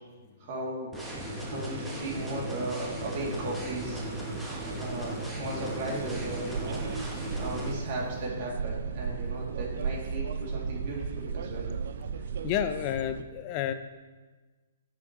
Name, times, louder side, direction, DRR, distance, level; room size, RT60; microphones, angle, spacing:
voice 1, 0.4-0.9 1.4-4.0 4.8-6.9 7.4-11.7, right 2 dB, 45° right, -3 dB, 2.4 m, -36 dB
sound 1, 0.9-7.7, right 1 dB, 5° right, 1.2 m, -37 dB
sound 2, 2.1-13.2, right 6 dB, 65° right, 0.4 m, -37 dB
sound 3, 3.1-8.3, equal, 15° left, 0.8 m, -45 dB
voice 2, 12.4-13.7, left 10 dB, 30° left, 10 dB, 0.4 m, -30 dB
8.9 x 5.8 x 3.0 m, 1.3 s
hypercardioid pair, 150°, 0 cm